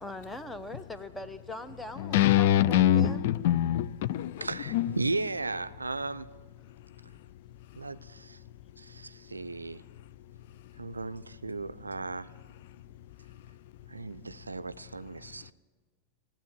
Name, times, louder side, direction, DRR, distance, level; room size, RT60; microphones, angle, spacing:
voice 1, 0.0-3.2, left 1 dB, 5° left, 0.9 m, -41 dB
voice 2, 2.0-4.5 4.7-4.9, left 12 dB, 50° left, 0.4 m, -24 dB
voice 3, 4.4-6.3 7.8-8.4 8.8-9.8 10.8-12.3 13.9-15.5, right 3 dB, 80° right, 0.4 m, -36 dB
17.0 x 8.8 x 9.4 m
figure-of-eight pair, 90°, 0 cm